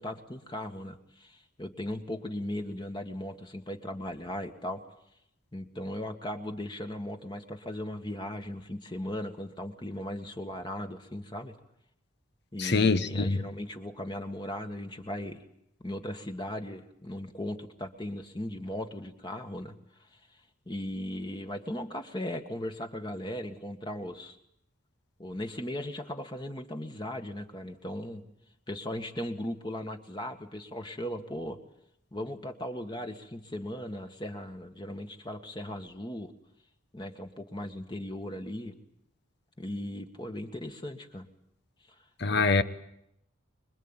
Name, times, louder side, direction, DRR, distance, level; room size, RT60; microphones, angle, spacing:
voice 1, 0.0-4.8 5.5-11.6 12.5-15.4 15.8-20.2 20.7-24.4 25.2-28.2 28.7-31.6 32.1-36.3 36.9-38.7 39.6-41.3 42.3-42.5, left 1 dB, 20° left, 1.8 m, -37 dB
voice 2, 12.6-13.5 42.2-42.6, left 4 dB, 55° left, 1.2 m, -24 dB
25.5 x 22.0 x 9.1 m
head